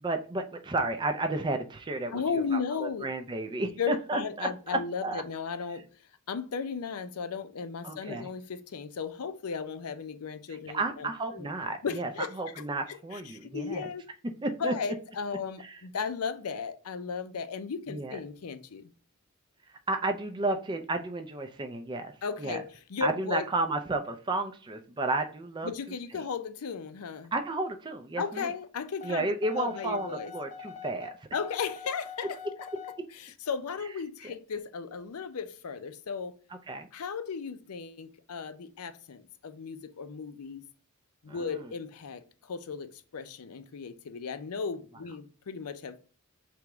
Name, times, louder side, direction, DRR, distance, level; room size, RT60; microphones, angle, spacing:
voice 1, 0.0-2.2 2.5-5.2 7.8-8.3 10.5-12.1 12.4-13.9 14.4-14.7 15.6-15.8 17.9-18.2 19.9-22.1 22.4-22.6 23.0-25.7 26.1-26.2 27.3-28.5 29.0-31.3 34.2-34.3 36.7-36.9 41.3-41.7, right 2 dB, 20° right, 0.3 m, -32 dB
voice 2, 2.1-3.1 3.8-5.9 6.3-11.5 11.8-14.0 14.6-18.9 22.2-23.4 25.6-27.3 28.2-30.3 31.3-32.7 33.1-36.3 36.9-40.6 41.2-46.0, left 5 dB, 85° left, 0.5 m, -35 dB
sound 1, 29.0-33.0, left 6 dB, 35° left, 0.6 m, -43 dB
3.4 x 3.0 x 4.7 m
head